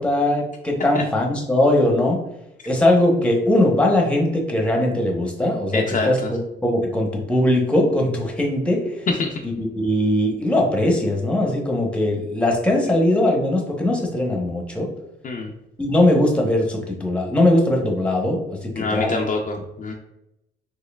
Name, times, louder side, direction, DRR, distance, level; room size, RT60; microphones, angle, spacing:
voice 1, 0.0-2.2 2.7-9.1 9.4-14.9 15.8-19.1, left 1 dB, 5° left, 0 dB, 0.9 m, -20 dB
voice 2, 5.7-6.3 9.1-9.4 15.2-15.5 18.8-19.9, left 3 dB, 40° left, 1 dB, 0.5 m, -25 dB
4.3 x 3.0 x 2.3 m, 0.86 s
cardioid pair, 90°, 20 cm